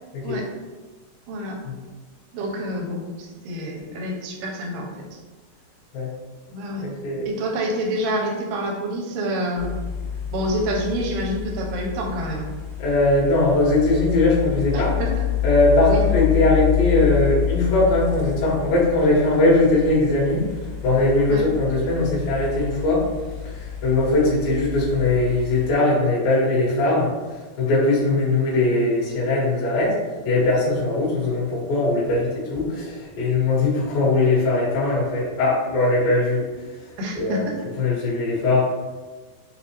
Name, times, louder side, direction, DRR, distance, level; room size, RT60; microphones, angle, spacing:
voice 1, 1.3-1.6 2.3-4.9 6.5-6.9 7.3-9.7 10.3-12.5 14.7-15.1 15.9-16.0 21.3-21.4 37.0-37.6, right 1 dB, 85° right, 0 dB, 2.5 m, -27 dB
voice 2, 6.8-7.3 12.8-14.9 15.4-20.4 20.8-23.0 23.4-27.1 27.6-29.9 30.2-36.4 37.2-37.5 37.8-38.6, left 2 dB, 65° left, -6 dB, 2.9 m, -20 dB
sound 1, 9.6-25.7, left 12 dB, 90° left, 3.1 m, -28 dB
6.6 x 2.4 x 2.9 m, 1.3 s
omnidirectional pair, 4.7 m